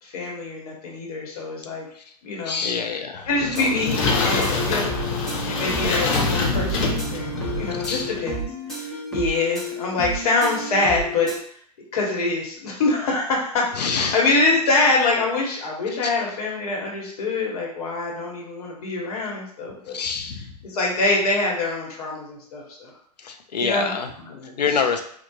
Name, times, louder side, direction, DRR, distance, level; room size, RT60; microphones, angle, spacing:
voice 1, 0.0-1.9 2.2-2.9 3.3-4.8 5.4-8.4 8.7-11.3 11.9-20.0 20.6-22.9 23.5-24.6, left 3 dB, 65° left, -2 dB, 1.2 m, -25 dB
voice 2, 2.5-3.7 7.8-8.1 13.8-14.2 19.9-20.5 23.2-24.1 24.6-25.0, left 5 dB, 80° left, 6 dB, 0.6 m, -26 dB
sound 1, 3.3-8.2, left 3 dB, 50° left, 0.7 m, -25 dB
sound 2, 3.5-11.4, right 1 dB, 5° left, 1.0 m, -32 dB
4.7 x 2.3 x 2.3 m, 0.62 s
hypercardioid pair, 110°, 21 cm